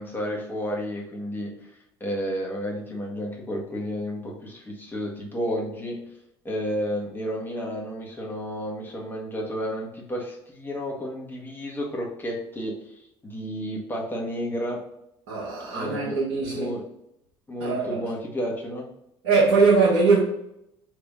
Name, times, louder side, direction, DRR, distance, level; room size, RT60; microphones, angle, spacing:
voice 1, 0.0-1.7 2.0-6.0 6.4-12.8 13.2-14.8 15.7-16.2 16.5-16.8 17.5-18.8, equal, 15° left, 1.4 m, -31 dB
voice 2, 15.3-16.7 17.6-18.0 19.2-20.2, right 4 dB, 70° right, 1.4 m, -21 dB
3.5 x 3.2 x 3.7 m
figure-of-eight pair, 60°, 15 cm